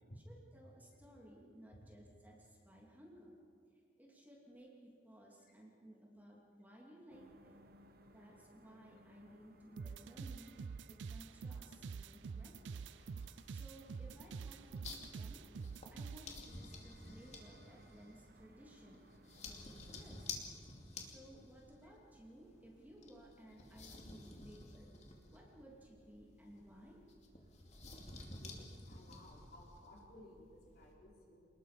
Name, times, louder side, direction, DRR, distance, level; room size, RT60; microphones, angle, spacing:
voice 1, 0.3-3.4 3.7-7.6 8.1-10.6 10.9-12.9 13.5-15.5 15.9-19.1 19.4-20.4 21.0-24.9 25.3-27.0 27.4-27.6, equal, 10° right, -2 dB, 2.8 m, -59 dB
sound 1, 7.1-20.3, right 1 dB, 55° right, 1.3 m, -65 dB
sound 2, 9.8-16.3, right 5 dB, 75° right, 0.4 m, -46 dB
sound 3, 12.5-30.9, left 3 dB, 40° left, 2.6 m, -53 dB
voice 2, 28.4-31.5, left 1 dB, 55° left, -3 dB, 5.4 m, -59 dB
27.5 x 20.5 x 5.2 m, 2.4 s
head